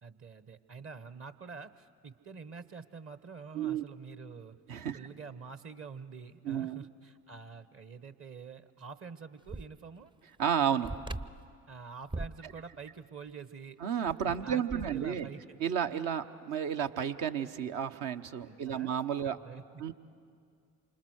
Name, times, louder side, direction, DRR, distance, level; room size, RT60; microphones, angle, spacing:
voice 1, 0.0-4.6 4.9-10.1 11.7-13.8 14.2-15.6 18.5-19.0 19.2-19.8, right 5 dB, 35° right, 13 dB, 1.2 m, -47 dB
voice 2, 4.7-5.0 6.4-6.9 10.4-10.9 13.8-15.3 15.6-19.4 19.8-19.9, right 8 dB, 60° right, 8 dB, 1.2 m, -32 dB
sound 1, 9.5-9.7 10.0-10.1 10.8-11.5 12.1-12.4 13.8-15.1, right 2 dB, 15° right, 0.6 m, -39 dB
28.0 x 25.5 x 6.5 m, 2.2 s
hypercardioid pair, 55°, 37 cm